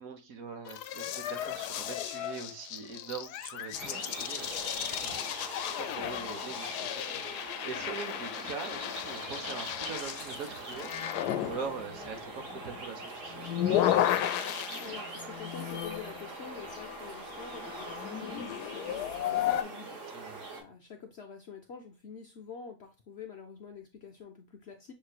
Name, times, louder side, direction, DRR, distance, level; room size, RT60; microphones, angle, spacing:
voice 1, 0.0-10.9 11.4-14.0 20.1-20.4, right 5 dB, 65° right, 1.3 m, -43 dB
sound 1, 0.6-19.6, left 11 dB, 85° left, 1.1 m, -34 dB
sound 2, 3.7-20.6, right 3 dB, 90° right, 1.7 m, -43 dB
voice 2, 14.7-20.0 20.5-24.9, left 6 dB, 60° left, 0.7 m, -46 dB
6.5 x 3.0 x 2.3 m
omnidirectional pair, 1.7 m